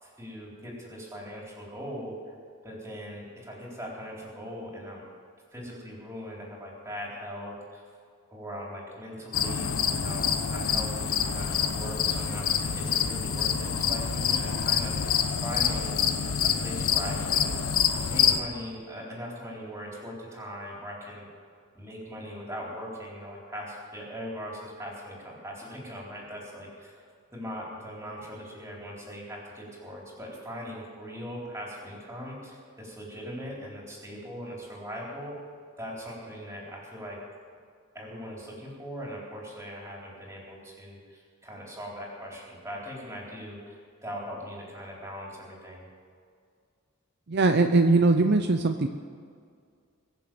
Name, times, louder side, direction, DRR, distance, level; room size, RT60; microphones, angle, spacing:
voice 1, 0.0-2.2 2.6-5.0 5.5-7.8 8.3-16.0 16.4-17.5 18.0-21.3 21.7-27.0 27.3-35.4 35.8-37.2 37.9-45.9, equal, 15° right, -3 dB, 4.0 m, -40 dB
sound 1, 9.3-18.4, left 7 dB, 75° left, 1.0 m, -26 dB
voice 2, 47.3-48.9, right 3 dB, 50° right, 6 dB, 0.6 m, -21 dB
22.0 x 7.3 x 7.7 m, 2.2 s
head